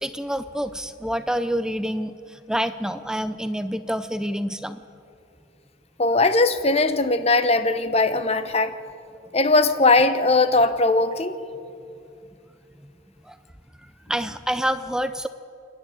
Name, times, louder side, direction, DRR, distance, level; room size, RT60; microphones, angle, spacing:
voice 1, 0.0-4.8 13.3-13.4 14.1-15.3, equal, 5° right, 11 dB, 0.5 m, -27 dB
voice 2, 6.0-8.7 9.3-11.4, left 3 dB, 30° left, 10 dB, 1.0 m, -19 dB
27.5 x 11.0 x 9.2 m, 2.7 s
head